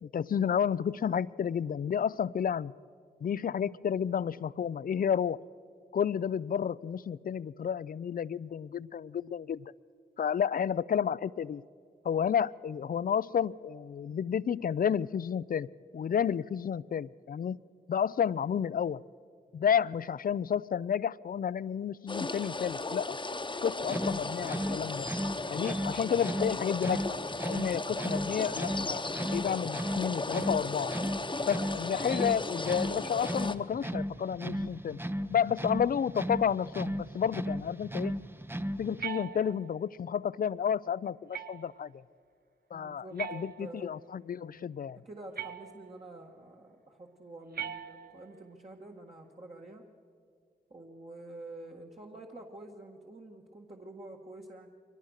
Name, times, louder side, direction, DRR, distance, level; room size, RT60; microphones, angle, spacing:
voice 1, 0.0-2.7 3.2-5.4 5.9-9.7 10.2-11.6 12.0-15.7 15.9-17.6 17.9-19.0 19.5-23.2 23.6-25.1 25.5-27.1 27.5-29.0 29.3-30.9 31.5-35.0 35.3-38.2 38.8-42.0 42.7-45.0, left 8 dB, 60° left, 20 dB, 0.4 m, -31 dB
sound 1, 22.1-33.6, left 3 dB, 30° left, 1.0 m, -36 dB
sound 2, 23.8-39.0, equal, 15° right, 0.7 m, -36 dB
sound 3, 39.0-39.9 41.3-41.9 43.2-44.0 45.4-46.1 47.5-48.4, right 9 dB, 65° right, 0.8 m, -41 dB
voice 2, 42.7-43.9 45.0-49.8 50.7-54.7, right 2 dB, 35° right, 0 dB, 1.8 m, -48 dB
23.0 x 19.0 x 6.5 m, 2.2 s
cardioid pair, 50°, 17 cm